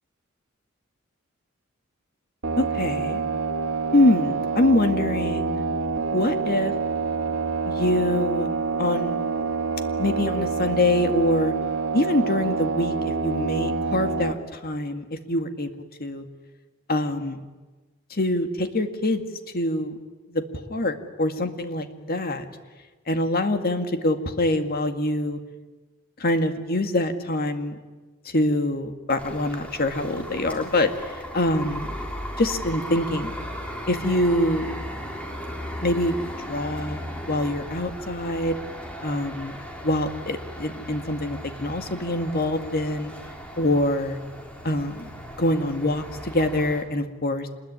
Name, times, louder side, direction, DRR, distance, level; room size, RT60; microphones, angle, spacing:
sound 1, 2.4-14.3, right 4 dB, 70° right, 2.3 m, -27 dB
voice 1, 2.6-3.2 3.9-5.6 6.1-6.7 7.7-8.5 8.8-9.2 10.0-11.5 11.9-15.7 16.0-16.3 16.9-17.4 18.1-19.2 19.5-20.0 20.3-20.4 20.7-22.4 23.1-25.4 26.2-27.8 28.3-31.9 32.4-33.3 33.9-34.7 35.8-36.1 36.5-37.0 37.3-38.6 39.0-39.5 39.8-43.1 43.6-44.2 44.6-45.1 45.4-47.5, left 1 dB, 45° left, 7 dB, 2.1 m, -24 dB
sound 2, 29.2-46.8, equal, 5° left, 3.6 m, -37 dB
26.0 x 21.0 x 9.8 m, 1.3 s
head